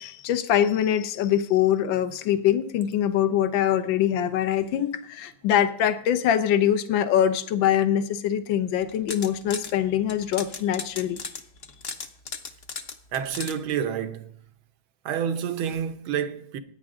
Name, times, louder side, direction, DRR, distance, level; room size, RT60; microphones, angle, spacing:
voice 1, 0.0-11.2, left 10 dB, 70° left, 1.6 m, -23 dB
sound 1, 8.8-9.7 10.1-13.5, left 5 dB, 45° left, 1.2 m, -36 dB
voice 2, 13.1-14.4 15.1-16.6, right 8 dB, 80° right, 1.8 m, -29 dB
19.5 x 9.7 x 3.7 m
omnidirectional pair, 2.2 m